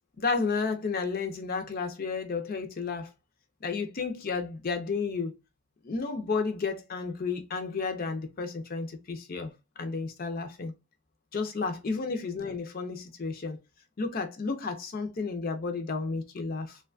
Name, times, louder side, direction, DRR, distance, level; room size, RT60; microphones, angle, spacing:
voice 1, 0.2-3.1 3.6-5.3 5.8-9.5 9.8-10.7 11.3-13.6 14.0-16.8, left 4 dB, 45° left, 0.5 m, -32 dB
3.0 x 2.2 x 2.3 m
head